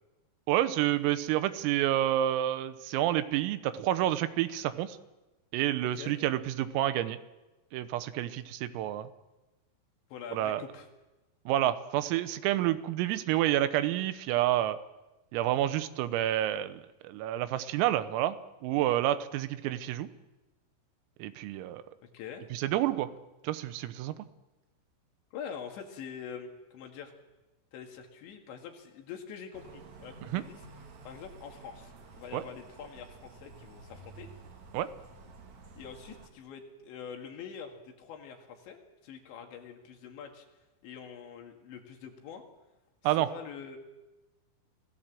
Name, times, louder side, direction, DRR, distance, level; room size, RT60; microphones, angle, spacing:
voice 1, 0.5-5.0 5.5-7.2 7.7-9.1 10.3-10.6 11.5-14.8 15.3-18.4 18.6-20.1 21.2-21.8 22.5-23.1 23.4-24.2 30.3-30.4 32.3-32.4 34.7-34.9 43.1-43.3, right 13 dB, 85° right, 12 dB, 3.7 m, -29 dB
voice 2, 10.1-10.9 22.1-22.4 25.3-27.1 27.7-30.6 31.1-34.3 35.8-38.8 39.0-40.5 40.8-42.4 43.0-43.8, left 7 dB, 65° left, 4 dB, 4.2 m, -45 dB
sound 1, 29.5-36.3, right 3 dB, 50° right, 2.4 m, -51 dB
27.5 x 16.5 x 7.7 m, 1.1 s
omnidirectional pair, 5.9 m